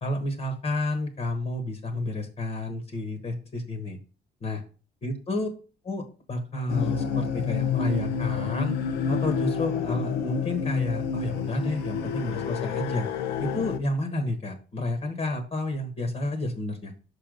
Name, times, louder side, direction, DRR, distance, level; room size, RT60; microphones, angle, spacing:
voice 1, 0.0-4.0 4.4-4.6 5.0-5.5 5.8-8.7 9.1-13.1 13.4-16.9, left 2 dB, 40° left, 5 dB, 1.3 m, -30 dB
sound 1, 6.7-13.8, left 7 dB, 80° left, 0.8 m, -29 dB
5.6 x 5.0 x 3.8 m, 0.36 s
cardioid pair, 110°, 17 cm